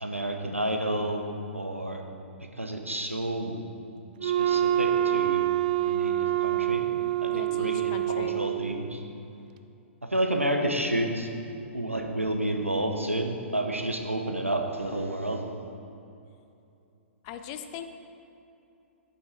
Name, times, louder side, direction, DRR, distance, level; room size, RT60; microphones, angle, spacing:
voice 1, 0.0-1.3 1.5-2.0 2.6-3.5 4.2-5.4 5.9-6.9 7.2-9.0 10.1-11.3 11.7-15.4, right 1 dB, 85° right, 3 dB, 0.9 m, -30 dB
Wind instrument woodwind instrument, 4.2-8.9, right 12 dB, 40° right, 0.4 m, -26 dB
voice 2, 7.3-8.4 17.2-17.9, left 9 dB, 30° left, 8 dB, 0.5 m, -40 dB
11.5 x 5.7 x 4.4 m, 2.7 s
figure-of-eight pair, 115°, 7 cm